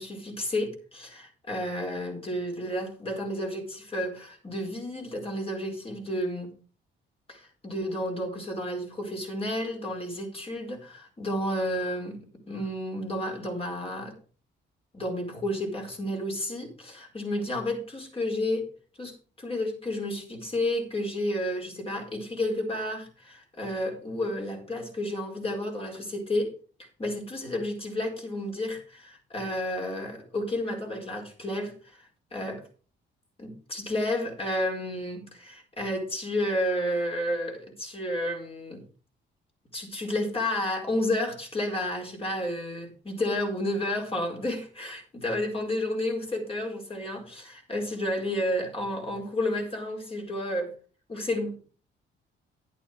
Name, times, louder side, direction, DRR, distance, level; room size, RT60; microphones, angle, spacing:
voice 1, 0.0-6.5 7.3-14.1 14.9-18.7 19.0-26.5 27.0-32.6 33.4-38.9 39.7-50.7 51.1-51.6, left 1 dB, 30° left, 1 dB, 4.6 m, -31 dB
11.0 x 8.8 x 5.0 m, 0.38 s
cardioid pair, 90°, 20 cm